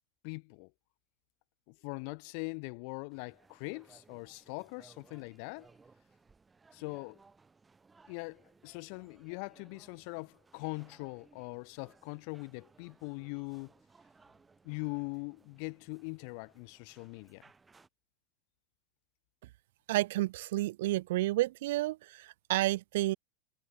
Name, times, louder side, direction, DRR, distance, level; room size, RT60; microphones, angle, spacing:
voice 1, 0.2-0.7 1.7-5.7 6.7-7.2 8.1-13.7 14.6-17.4, left 40 dB or more, 40° left, 1.8 m, -42 dB
sound 1, 3.1-17.9, right 4 dB, 10° right, 2.6 m, -63 dB
voice 2, 19.9-23.2, right 17 dB, 60° right, 0.8 m, -30 dB
supercardioid pair, 175°, 0 cm